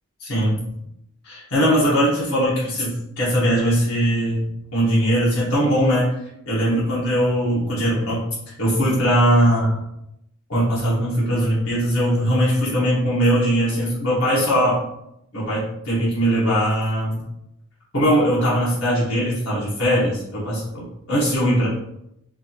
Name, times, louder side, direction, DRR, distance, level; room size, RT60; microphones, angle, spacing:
voice 1, 0.2-0.6 1.2-6.1 6.5-8.2 8.6-9.8 10.5-14.8 15.3-17.2 17.9-21.7, equal, 90° left, -8 dB, 1.4 m, -20 dB
4.6 x 2.6 x 2.9 m, 0.81 s
head